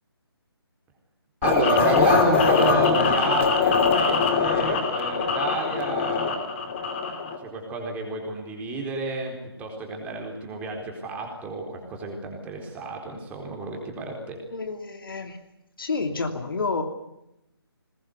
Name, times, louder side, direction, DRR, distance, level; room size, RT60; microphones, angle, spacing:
sound 1, 1.4-7.4, left 5 dB, 30° left, 2.9 m, -22 dB
voice 1, 1.4-7.1 7.4-14.4, right 3 dB, 10° right, 1 dB, 4.2 m, -30 dB
voice 2, 14.5-15.4 15.8-16.8, left 4 dB, 55° left, 6 dB, 3.0 m, -29 dB
22.0 x 20.5 x 8.1 m, 0.87 s
figure-of-eight pair, 150°, 13 cm